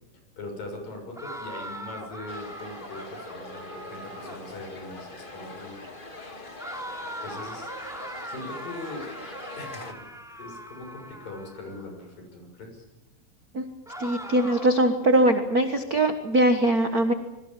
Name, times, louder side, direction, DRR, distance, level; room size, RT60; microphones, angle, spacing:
voice 1, 0.4-5.8 7.2-7.7 8.3-9.1 9.6-10.0 10.4-12.8, left 2 dB, 70° left, 3 dB, 8.3 m, -40 dB
sound 1, 1.2-4.6 6.6-11.9 13.9-14.9, equal, ahead, 2.5 m, -40 dB
sound 2, 2.3-9.9, left 2 dB, 20° left, 1.5 m, -42 dB
voice 2, 14.0-17.1, right 1 dB, 65° right, 7 dB, 0.9 m, -21 dB
26.5 x 22.5 x 7.4 m, 1.0 s
omnidirectional pair, 4.2 m